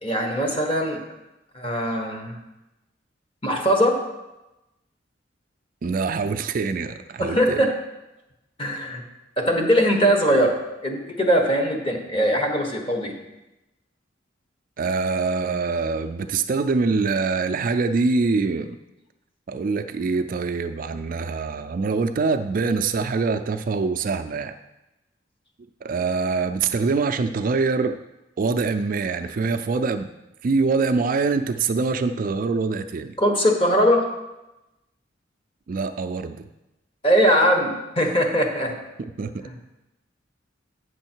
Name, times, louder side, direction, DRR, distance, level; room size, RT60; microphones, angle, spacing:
voice 1, 0.0-1.0 1.5-2.4 3.4-4.0 7.2-7.7 8.6-9.0 9.4-10.6 10.8-13.1 33.2-34.1 37.0-38.8 39.4-39.5, equal, 30° left, 2 dB, 1.2 m, -21 dB
voice 2, 5.8-7.7 14.8-18.8 19.5-24.5 25.8-28.0 28.4-30.1 30.4-33.1 35.7-36.4 39.2-39.5, right 4 dB, 45° right, 8 dB, 0.3 m, -24 dB
8.4 x 6.4 x 4.5 m, 0.97 s
head